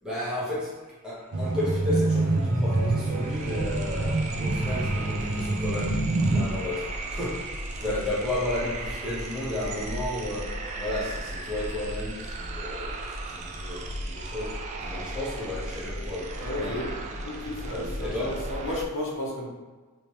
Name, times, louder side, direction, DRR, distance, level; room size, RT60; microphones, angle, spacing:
voice 1, 0.0-7.6 7.8-16.8 17.7-18.4, left 1 dB, 5° right, -9 dB, 1.1 m, -33 dB
sound 1, 1.3-6.4, right 2 dB, 85° right, 0.6 m, -26 dB
sound 2, 1.8-1.9 2.2-18.9, right 1 dB, 30° right, 0.3 m, -36 dB
sound 3, 3.7-8.0, left 2 dB, 50° right, 1.1 m, -49 dB
voice 2, 16.4-16.9 17.2-19.5, left 1 dB, 60° left, -3 dB, 0.8 m, -33 dB
3.3 x 3.0 x 3.0 m, 1.3 s
head